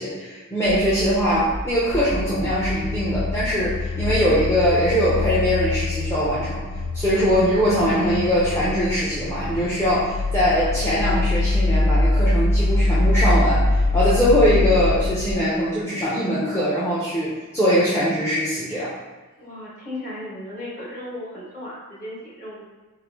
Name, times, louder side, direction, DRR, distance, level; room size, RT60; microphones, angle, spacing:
voice 1, 0.0-6.7 6.9-18.9, equal, 10° left, -9 dB, 0.6 m, -21 dB
sound 1, 0.6-15.3, left 2 dB, 80° left, 0.4 m, -24 dB
voice 2, 19.4-22.6, left 1 dB, 35° left, -7 dB, 1.5 m, -35 dB
3.9 x 3.8 x 3.0 m, 1.3 s
head